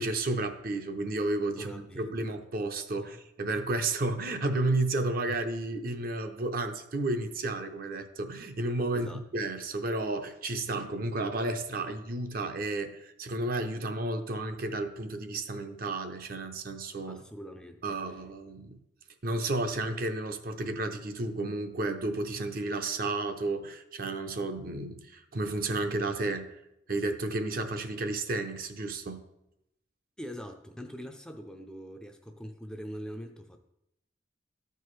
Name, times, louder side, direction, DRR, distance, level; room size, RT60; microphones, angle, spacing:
voice 1, 0.0-17.2 17.8-18.8 19.2-26.5 26.9-29.2, right 2 dB, 50° right, 7 dB, 0.7 m, -32 dB
voice 2, 1.6-2.3 3.0-3.2 5.3-5.4 8.9-9.2 17.1-18.0 30.2-33.6, equal, 5° left, 4 dB, 0.4 m, -43 dB
13.0 x 4.6 x 3.2 m, 0.83 s
head